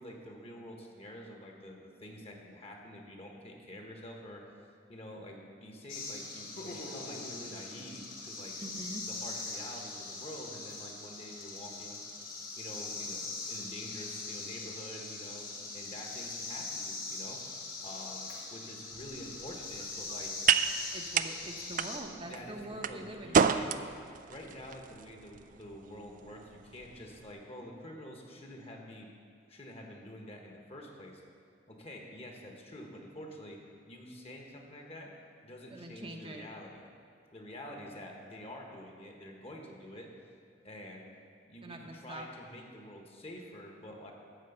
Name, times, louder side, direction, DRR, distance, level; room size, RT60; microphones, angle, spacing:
voice 1, 0.0-4.5 4.9-8.6 9.1-12.0 12.6-15.5 15.7-17.4 17.8-20.3 22.2-23.7 24.3-29.1 29.5-31.2 31.7-33.6 33.8-35.1 35.4-36.9 37.3-40.1 40.6-41.1 41.5-44.1, left 1 dB, 35° left, 1 dB, 1.3 m, -47 dB
sound 1, 5.9-22.0, left 3 dB, 55° left, 1.7 m, -41 dB
voice 2, 8.6-9.1 20.9-23.7 35.7-36.5 41.6-42.2, right 1 dB, 30° right, 2 dB, 0.8 m, -44 dB
sound 2, 18.9-27.3, right 7 dB, 45° right, 0.3 m, -33 dB
13.0 x 4.6 x 8.0 m, 2.3 s
head